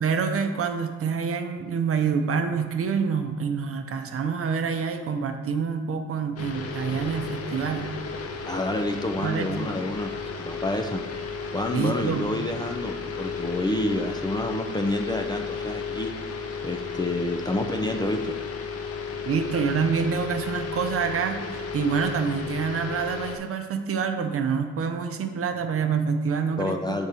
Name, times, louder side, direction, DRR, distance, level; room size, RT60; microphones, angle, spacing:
voice 1, 0.0-7.9 9.2-9.7 11.7-12.2 19.3-27.0, right 6 dB, 50° right, 6 dB, 0.7 m, -27 dB
sound 1, 6.4-23.4, left 5 dB, 50° left, 0.7 m, -34 dB
voice 2, 8.5-10.1 10.4-11.0 11.5-16.1 16.6-18.3 26.6-27.1, left 1 dB, 15° left, 4 dB, 0.4 m, -28 dB
6.6 x 3.6 x 4.3 m, 1.4 s
cardioid pair, 90°, 30 cm